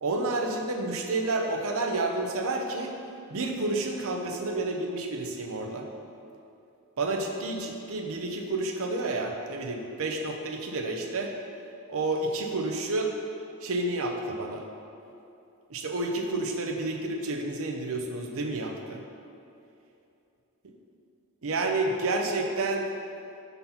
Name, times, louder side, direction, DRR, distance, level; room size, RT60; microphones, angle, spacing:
voice 1, 0.0-2.9 3.3-5.9 7.0-11.3 11.9-13.2 13.6-14.6 15.7-19.0 20.6-20.7 21.4-22.9, right 2 dB, 65° right, 2 dB, 0.7 m, -30 dB
5.8 x 4.1 x 5.5 m, 2.7 s
head